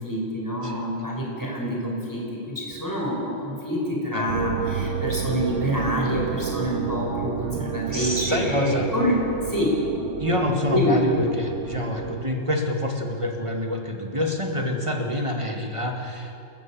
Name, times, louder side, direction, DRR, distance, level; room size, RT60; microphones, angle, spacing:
voice 1, 0.0-9.2 9.5-9.8 10.7-11.0, equal, 10° left, -3 dB, 5.6 m, -26 dB
sound 1, 4.3-12.2, right 7 dB, 50° right, 0.9 m, -30 dB
voice 2, 7.5-8.9 10.2-16.4, left 1 dB, 15° right, 2 dB, 2.0 m, -27 dB
29.0 x 14.5 x 7.6 m, 2.8 s
omnidirectional pair, 2.1 m